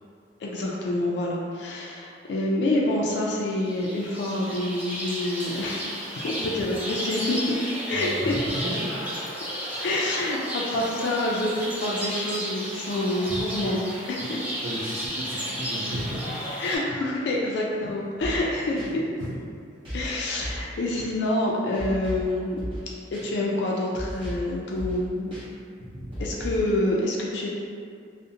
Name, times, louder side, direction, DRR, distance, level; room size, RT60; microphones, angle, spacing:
voice 1, 0.4-5.8 6.1-7.6 7.9-8.3 9.8-13.8 14.1-14.4 16.6-18.8 19.9-22.6 23.2-25.3 26.2-27.5, left 1 dB, 70° left, -3 dB, 0.3 m, -27 dB
sound 1, 3.5-16.8, equal, 10° right, 0.3 m, -33 dB
voice 2, 7.9-9.5 10.7-10.9 13.2-13.7 14.2-16.4 18.7-19.4 25.8-26.2, equal, 80° right, -7 dB, 0.4 m, -35 dB
sound 2, 18.2-18.5 18.8-18.9 19.9-20.1 20.4-20.7 20.9-21.1 21.8-22.3 22.6-22.9 23.1-23.2 23.9-24.5 24.8-25.0 25.3-25.4 26.1-26.7, equal, 30° right, 0.8 m, -35 dB
2.5 x 2.0 x 2.7 m, 2.2 s
head